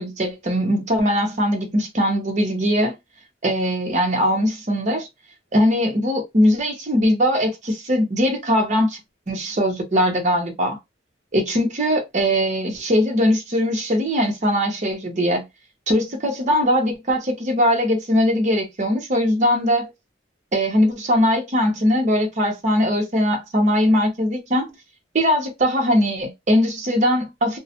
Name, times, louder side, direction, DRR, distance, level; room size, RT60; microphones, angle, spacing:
voice 1, 0.0-2.9 3.4-5.1 5.5-9.0 9.3-10.8 11.3-15.4 15.9-19.9 20.5-24.7 25.1-27.6, equal, 40° right, 0.8 m, -20 dB
2.3 x 2.0 x 2.7 m
head